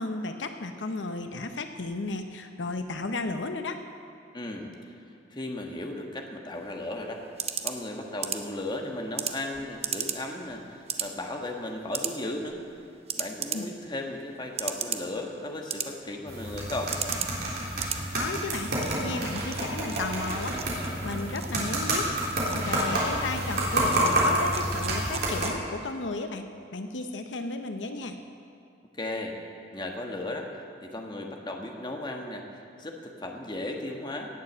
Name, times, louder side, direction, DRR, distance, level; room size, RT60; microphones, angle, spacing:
voice 1, 0.0-3.8 13.5-13.7 18.1-18.7 19.0-28.2, left 3 dB, 85° left, 7 dB, 0.8 m, -34 dB
voice 2, 4.3-4.7 5.3-7.2 7.6-12.6 13.2-16.9 29.0-29.4 29.7-34.4, left 1 dB, 25° left, 2 dB, 1.4 m, -35 dB
sound 1, 6.6-25.9, right 7 dB, 35° right, 0.8 m, -38 dB
sound 2, 16.3-25.4, right 1 dB, 60° right, 3.5 m, -29 dB
17.5 x 7.5 x 7.4 m, 2.5 s
head